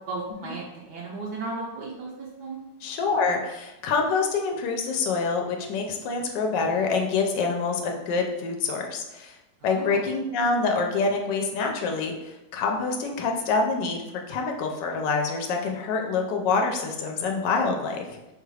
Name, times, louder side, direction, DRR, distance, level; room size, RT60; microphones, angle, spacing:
voice 1, 0.0-2.6 9.6-10.0, right 3 dB, 75° right, -3 dB, 1.2 m, -35 dB
voice 2, 2.8-9.3 9.6-18.2, left 4 dB, 85° left, 2 dB, 1.2 m, -26 dB
5.1 x 2.3 x 3.2 m, 0.96 s
omnidirectional pair, 1.9 m